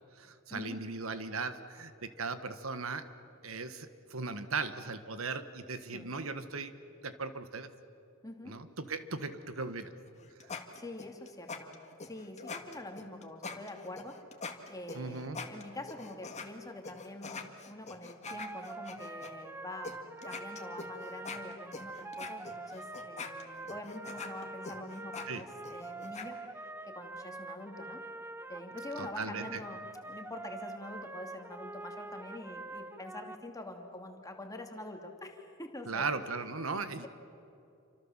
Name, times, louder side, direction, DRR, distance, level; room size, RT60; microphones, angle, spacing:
voice 1, 0.2-3.0 3.4-6.7 7.0-7.7 8.5-9.9 14.9-15.4 25.3-25.4 29.0-29.6 35.9-37.1, right 4 dB, 80° right, 10 dB, 1.5 m, -37 dB
voice 2, 8.2-8.6 10.7-14.2 14.7-28.0 28.5-36.1 36.7-37.1, left 1 dB, 15° left, 3 dB, 2.7 m, -45 dB
sound 1, 10.1-16.5 16.8-19.3 19.8-20.0 20.2-26.3, left 4 dB, 35° left, 2.0 m, -44 dB
sound 2, 18.2-33.4, right 2 dB, 10° right, 0.7 m, -45 dB
28.5 x 25.5 x 7.4 m, 2.7 s
head